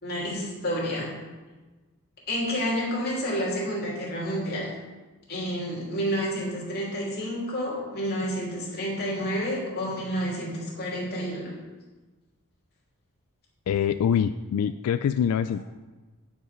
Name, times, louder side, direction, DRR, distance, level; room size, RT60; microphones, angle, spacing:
voice 1, 0.0-1.1 2.3-4.7 5.3-11.5, equal, 45° left, -4 dB, 2.9 m, -29 dB
voice 2, 13.7-15.6, left 8 dB, 90° left, 11 dB, 0.3 m, -24 dB
9.6 x 5.4 x 5.9 m, 1.2 s
head